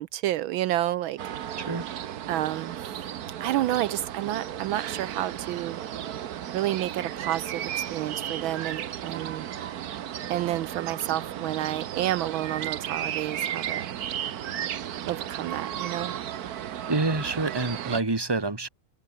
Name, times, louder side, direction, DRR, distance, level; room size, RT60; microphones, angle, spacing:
voice 1, 0.0-1.4 2.3-3.0 3.4-5.8 6.5-9.5 10.3-13.9 15.0-16.1, right 14 dB, 80° right, 1.4 m, -30 dB
sound 1, 1.2-18.0, right 10 dB, 55° right, 1.2 m, -34 dB
voice 2, 16.9-18.7, right 3 dB, 10° right, 1.9 m, -27 dB
omnidirectional pair, 2.3 m